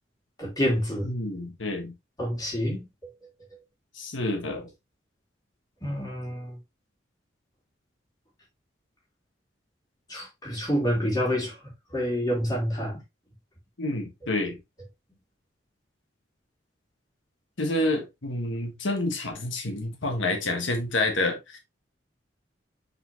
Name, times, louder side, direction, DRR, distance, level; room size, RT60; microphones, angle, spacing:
voice 1, 0.4-1.1 2.2-3.1 5.8-6.6 10.1-11.6 11.9-13.0, equal, 20° left, 3.4 m, -28 dB
voice 2, 1.0-1.9 3.9-4.7 13.8-14.6 17.6-21.6, left 2 dB, 90° left, 1.4 m, -28 dB
5.8 x 5.6 x 2.9 m
head